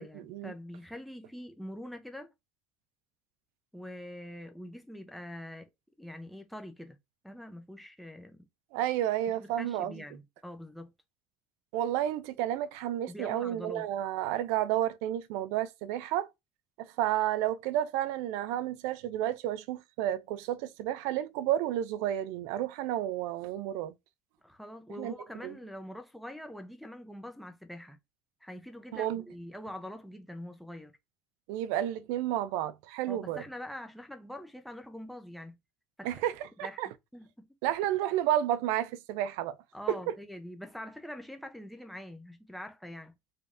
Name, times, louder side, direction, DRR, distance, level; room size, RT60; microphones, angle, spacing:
voice 1, 0.0-2.3 3.7-5.7 6.0-7.0 7.2-8.5 9.4-10.9 13.1-13.9 24.4-28.0 28.4-31.0 33.1-35.6 36.0-36.1 36.6-36.8 37.1-37.5 39.7-43.1, left 1 dB, ahead, 0.5 m, -44 dB
voice 2, 8.7-9.9 11.7-16.3 16.8-23.9 25.0-25.1 25.4-25.5 28.9-29.2 31.5-33.4 36.0-36.9 37.6-39.6 39.9-40.0, right 12 dB, 80° right, 0.4 m, -31 dB
3.2 x 2.6 x 3.5 m
cardioid pair, 145°, 5 cm